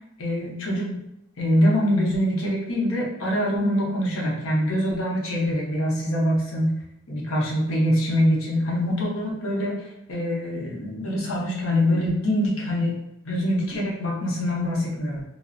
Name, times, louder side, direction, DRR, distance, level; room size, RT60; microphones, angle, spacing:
voice 1, 0.2-0.9 1.4-6.7 7.1-15.2, equal, 80° left, -3 dB, 0.8 m, -24 dB
2.4 x 2.0 x 2.5 m, 0.87 s
head